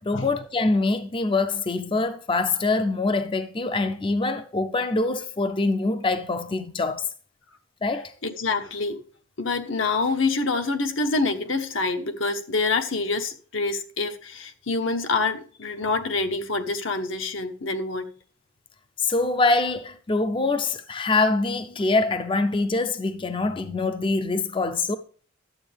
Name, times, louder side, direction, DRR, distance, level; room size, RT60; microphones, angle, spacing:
voice 1, 0.0-7.1 7.8-8.1 19.0-25.0, left 3 dB, 25° left, 0.5 m, -24 dB
voice 2, 8.2-9.0 9.4-18.1, left 3 dB, 80° left, 1.2 m, -26 dB
11.5 x 7.8 x 3.4 m
head